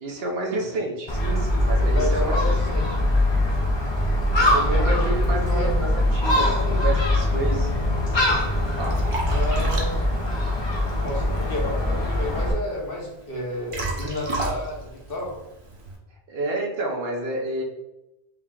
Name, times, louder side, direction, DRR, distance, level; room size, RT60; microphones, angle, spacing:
voice 1, 0.0-2.5 4.4-7.7 8.5-9.0 16.3-17.6, right 2 dB, 65° right, 0 dB, 0.9 m, -30 dB
Gull seagull, 1.1-12.5, left 1 dB, 30° left, 0.6 m, -22 dB
voice 2, 1.9-2.8 4.6-5.7 6.4-6.9 9.3-10.1 11.0-15.3, left 1 dB, 60° left, -2 dB, 1.1 m, -31 dB
Liquid, 8.2-16.0, right 2 dB, 35° right, 0.6 m, -34 dB
5.0 x 2.9 x 2.4 m, 0.92 s
omnidirectional pair, 1.1 m